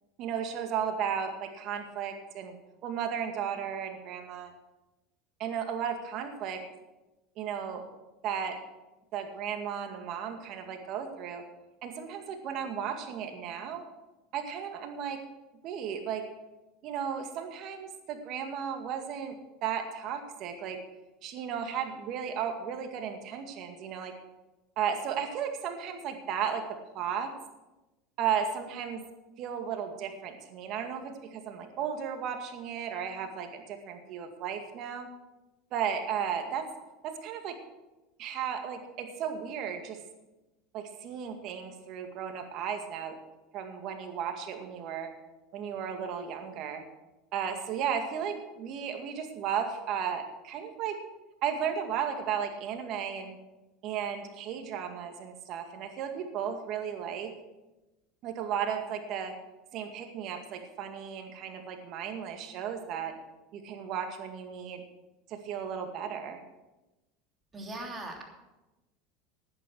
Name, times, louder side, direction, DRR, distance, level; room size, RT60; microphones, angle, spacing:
voice 1, 0.2-2.6 2.8-4.5 5.4-6.6 7.4-7.8 8.2-8.5 9.1-11.4 11.8-13.8 14.3-15.2 15.6-16.2 16.8-19.3 19.6-20.8 21.2-24.1 24.8-26.6 26.9-27.3 28.2-29.0 29.4-35.1 35.7-36.6 37.2-37.5 38.2-40.0 40.7-43.2 43.5-45.1 45.5-46.8 47.3-51.0 51.4-53.4 53.8-57.3 58.2-59.3 59.7-63.1 63.5-64.8 65.3-66.4, right 8 dB, 55° right, 5 dB, 2.0 m, -34 dB
voice 2, 67.5-68.2, right 2 dB, 25° right, 1 dB, 3.2 m, -39 dB
11.0 x 9.8 x 6.2 m, 1.1 s
supercardioid pair, 105°, 0 cm